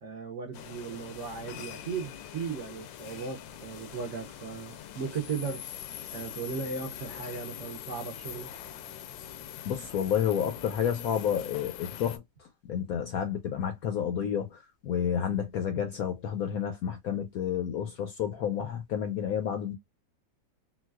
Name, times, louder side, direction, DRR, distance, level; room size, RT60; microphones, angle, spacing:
voice 1, 0.0-5.6 6.1-8.5, right 5 dB, 60° right, 0.8 m, -37 dB
sound 1, 0.5-12.2, left 10 dB, 90° left, 1.3 m, -43 dB
voice 2, 9.6-19.7, left 8 dB, 75° left, 0.8 m, -30 dB
3.9 x 2.3 x 2.2 m
omnidirectional pair, 2.0 m